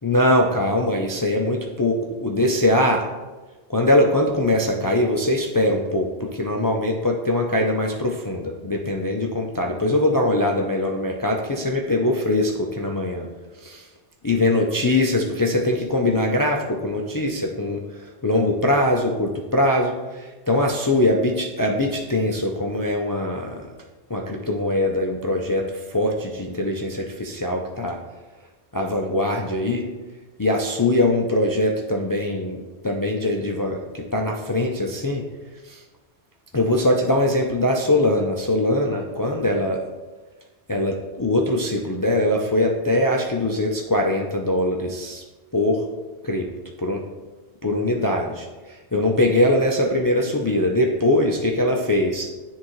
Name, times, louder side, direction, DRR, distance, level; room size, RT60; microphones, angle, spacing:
voice 1, 0.0-3.0 3.7-13.3 13.6-13.9 14.2-23.7 24.1-28.0 28.7-29.9 30.4-35.2 35.6-35.8 36.5-39.8 40.7-45.2 45.5-45.8 46.2-46.5 46.8-47.0 47.6-52.3, left 1 dB, 30° left, 0 dB, 0.3 m, -22 dB
10.0 x 3.6 x 3.1 m, 1.2 s
omnidirectional pair, 1.1 m